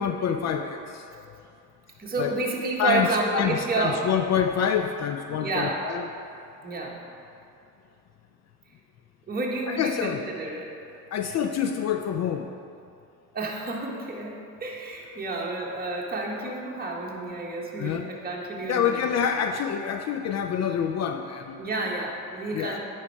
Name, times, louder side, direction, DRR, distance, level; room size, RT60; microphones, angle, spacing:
voice 1, 0.0-1.4 2.2-2.3 2.8-6.1 9.7-10.2 11.1-12.5 17.8-18.1 18.7-21.7 22.5-22.8, left 8 dB, 35° left, 6 dB, 0.4 m, -27 dB
voice 2, 2.0-4.1 5.4-5.9 6.6-7.0 9.3-10.7 13.3-19.3 21.6-22.8, right 2 dB, 20° right, -2 dB, 1.5 m, -30 dB
9.5 x 4.5 x 4.7 m, 2.6 s
hypercardioid pair, 65°, 48 cm